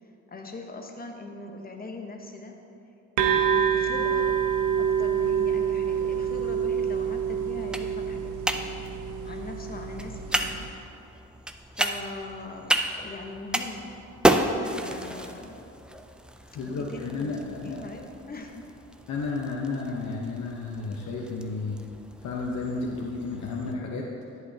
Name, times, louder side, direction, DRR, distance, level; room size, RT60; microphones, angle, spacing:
voice 1, 0.3-2.6 3.2-4.3 4.8-8.8 9.2-10.7 11.7-14.0 14.8-15.7 16.7-18.7, left 2 dB, 30° left, 2 dB, 1.0 m, -41 dB
sound 1, 3.2-10.7, right 8 dB, 85° right, 0.7 m, -27 dB
sound 2, 5.8-23.7, right 1 dB, 5° right, 0.4 m, -33 dB
voice 2, 16.5-17.8 19.1-21.8 22.2-24.1, left 3 dB, 70° left, -2 dB, 1.0 m, -32 dB
10.5 x 8.0 x 2.8 m, 2.7 s
cardioid pair, 90°, 30 cm